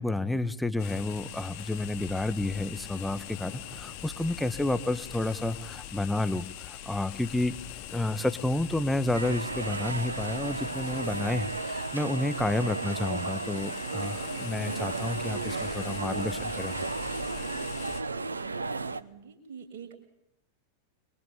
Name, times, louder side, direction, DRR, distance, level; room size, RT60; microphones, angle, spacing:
voice 1, 0.0-7.6 7.9-16.8, left 2 dB, 5° left, 11 dB, 1.5 m, -30 dB
sound 1, 0.8-18.0, left 11 dB, 50° left, 4.0 m, -42 dB
sound 2, 9.1-19.0, right 3 dB, 75° right, 1.1 m, -34 dB
voice 2, 18.1-20.0, right 7 dB, 55° right, 5 dB, 6.4 m, -48 dB
29.0 x 23.0 x 8.8 m, 0.79 s
figure-of-eight pair, 90°, 0 cm